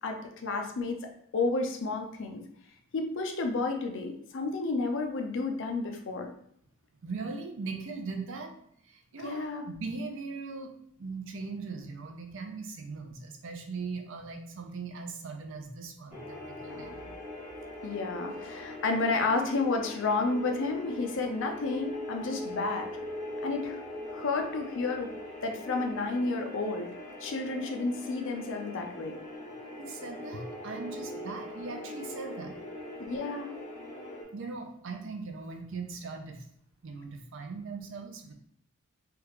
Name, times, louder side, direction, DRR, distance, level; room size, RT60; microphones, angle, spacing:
voice 1, 0.0-2.4 2.9-6.3 9.2-9.7 16.7-17.1 17.8-22.9 23.4-23.8 24.1-25.1 25.4-26.9 27.2-29.2 33.0-33.6, left 3 dB, 60° left, 4 dB, 0.5 m, -31 dB
voice 2, 7.0-8.5 8.8-10.7 11.0-17.0 29.8-32.5 34.3-36.4 36.8-38.3, right 4 dB, 60° right, 4 dB, 0.5 m, -39 dB
sound 1, 16.1-34.2, left 1 dB, 35° left, 0.9 m, -41 dB
3.3 x 2.4 x 3.1 m, 0.67 s
head